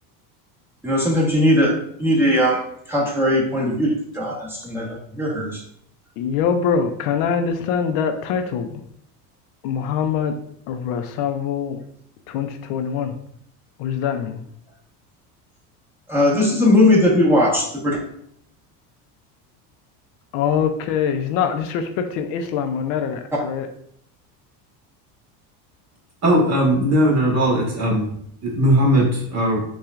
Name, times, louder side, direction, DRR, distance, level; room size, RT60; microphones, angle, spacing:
voice 1, 0.8-5.6 16.1-18.0, left 1 dB, 5° right, -4 dB, 1.2 m, -19 dB
voice 2, 6.2-8.8 9.6-10.4 10.7-11.8 12.3-13.1 13.8-14.4 20.3-23.7, left 7 dB, 65° left, 7 dB, 0.6 m, -23 dB
voice 3, 26.2-28.1 28.4-29.6, equal, 35° right, -2 dB, 1.4 m, -18 dB
5.5 x 2.4 x 2.4 m, 0.69 s
supercardioid pair, 105°, 48 cm